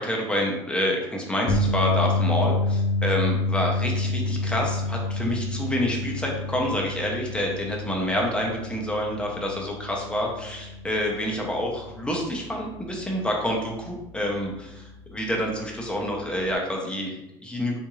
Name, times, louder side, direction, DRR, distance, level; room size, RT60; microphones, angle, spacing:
voice 1, 0.0-17.8, equal, 10° left, -1 dB, 0.7 m, -28 dB
sound 1, 1.5-13.7 14.1-14.3 16.5-16.6, left 2 dB, 65° left, 0.6 m, -28 dB
3.5 x 2.6 x 3.0 m, 0.91 s
cardioid pair, 125°, 11 cm